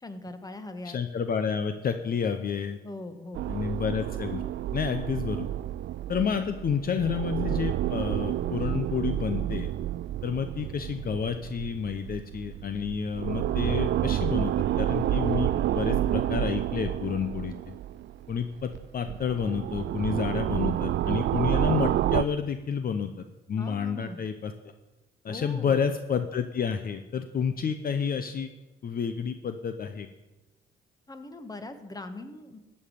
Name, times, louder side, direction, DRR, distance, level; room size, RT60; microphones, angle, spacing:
voice 1, 0.0-1.0 2.8-3.5 23.6-24.2 25.3-25.8 31.1-32.6, left 2 dB, 20° left, 8 dB, 1.4 m, -40 dB
voice 2, 0.8-2.8 3.5-4.4 4.7-5.5 6.1-9.7 10.2-17.7 18.3-23.1 23.5-24.5 25.2-28.5 28.8-30.1, left 6 dB, 50° left, 8 dB, 0.8 m, -30 dB
sound 1, 3.3-18.4 18.7-22.2, right 12 dB, 65° right, 0.4 m, -29 dB
13.5 x 5.5 x 9.4 m, 1.1 s
cardioid pair, 90°, 20 cm